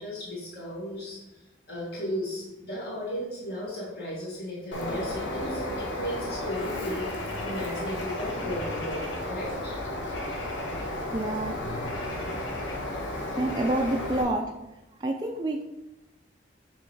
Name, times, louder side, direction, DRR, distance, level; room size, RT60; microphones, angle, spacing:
voice 1, 0.0-1.4 1.7-9.8, equal, 60° left, -5 dB, 1.5 m, -35 dB
Bird, 4.7-14.2, left 1 dB, 90° left, 1.0 m, -33 dB
voice 2, 11.1-11.6 13.4-14.5 15.0-15.6, right 1 dB, 20° right, 1 dB, 0.4 m, -28 dB
6.9 x 3.1 x 4.6 m, 0.97 s
head